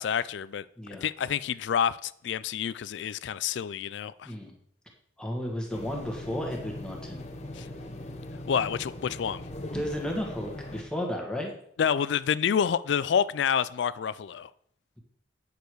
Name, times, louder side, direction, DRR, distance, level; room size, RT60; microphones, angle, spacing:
voice 1, 0.0-0.6 1.0-4.3 7.5-7.7 8.5-9.4 11.8-14.5, left 8 dB, 70° left, 0.3 m, -28 dB
voice 2, 4.2-4.6 5.2-7.2 9.7-11.5, equal, 5° left, 1.7 m, -33 dB
sound 1, 5.7-10.8, left 1 dB, 35° left, 1.0 m, -40 dB
9.3 x 6.7 x 4.7 m
head